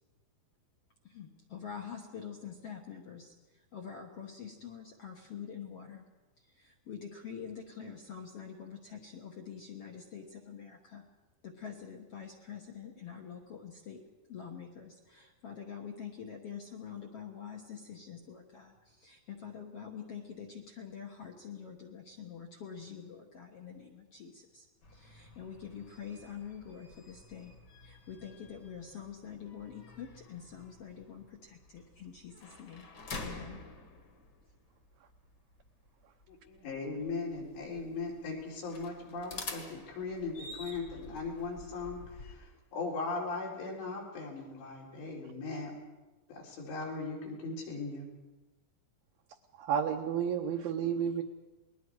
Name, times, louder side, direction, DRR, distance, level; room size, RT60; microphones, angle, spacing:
voice 1, 1.0-6.1 6.4-11.0 11.4-14.0 14.3-24.6 24.9-27.5 27.8-32.9 33.2-33.6, left 7 dB, 60° left, 1 dB, 1.5 m, -46 dB
sound 1, 24.8-42.3, left 3 dB, 40° left, 1.6 m, -49 dB
voice 2, 36.3-45.7 46.3-48.1, left 3 dB, 90° left, -3 dB, 6.3 m, -39 dB
voice 3, 49.6-51.2, right 8 dB, 75° right, 2 dB, 2.4 m, -31 dB
29.5 x 21.0 x 4.8 m, 1.2 s
omnidirectional pair, 4.9 m